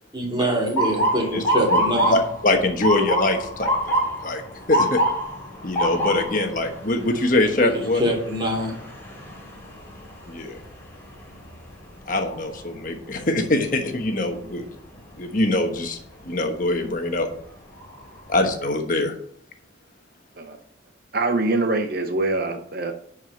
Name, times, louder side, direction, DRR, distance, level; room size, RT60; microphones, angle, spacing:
voice 1, 0.1-2.2 7.6-8.7, equal, 25° right, 2.7 m, -24 dB
Motor vehicle (road) / Siren, 0.8-12.7 13.1-13.5 14.3-14.6 16.5-16.7 17.3-17.4 17.8-18.5, equal, 10° left, 3.0 m, -27 dB
voice 2, 2.1-4.4 4.7-5.0 5.6-8.0 10.3-10.6 12.1-14.6 15.2-16.0 16.2-17.3 18.3-19.1, left 2 dB, 45° left, 1.2 m, -23 dB
voice 3, 21.1-22.9, right 2 dB, 50° right, 0.7 m, -24 dB
11.0 x 4.9 x 6.1 m
head